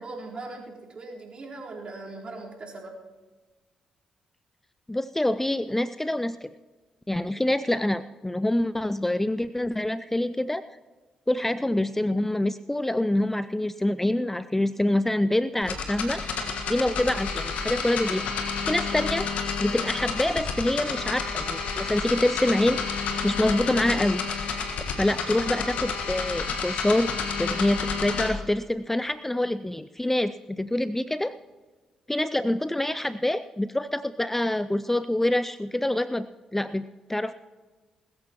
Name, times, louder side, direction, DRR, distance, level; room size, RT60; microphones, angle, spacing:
voice 1, 0.0-2.9, right 2 dB, 45° right, -3 dB, 4.1 m, -39 dB
voice 2, 4.9-6.5 7.1-10.6 11.3-18.3 18.6-19.3 19.6-22.8 23.2-24.2 25.0-27.1 27.4-31.3 32.1-36.3 36.5-37.3, left 1 dB, 10° left, 15 dB, 0.4 m, -26 dB
sound 1, 15.6-28.3, left 5 dB, 65° left, 1.6 m, -30 dB
20.5 x 14.0 x 3.0 m, 1.3 s
hypercardioid pair, 40°, 2 cm